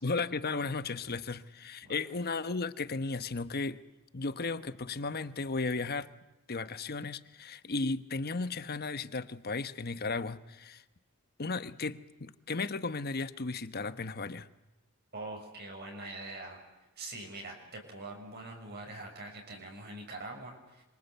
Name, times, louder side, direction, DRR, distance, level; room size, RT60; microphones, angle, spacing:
voice 1, 0.0-3.8 4.1-6.1 6.5-10.8 11.4-14.5, left 3 dB, 45° left, 12 dB, 1.1 m, -35 dB
voice 2, 15.1-16.6 17.0-20.8, right 2 dB, 50° right, 2 dB, 6.9 m, -43 dB
28.0 x 25.5 x 8.1 m, 1.0 s
head